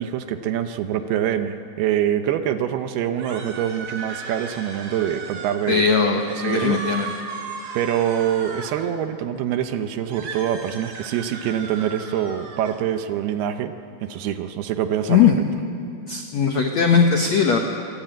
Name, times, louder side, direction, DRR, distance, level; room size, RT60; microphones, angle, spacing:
voice 1, 0.0-5.8 6.3-6.8 7.7-13.7 14.0-15.3, right 10 dB, 75° right, 8 dB, 2.6 m, -25 dB
sound 1, 3.1-5.8 6.1-8.9 10.0-12.8, right 4 dB, 40° right, 1.8 m, -36 dB
voice 2, 5.7-7.1 15.1-15.4 16.1-17.6, left 6 dB, 85° left, 3 dB, 1.5 m, -19 dB
26.0 x 16.0 x 9.1 m, 2.5 s
omnidirectional pair, 5.0 m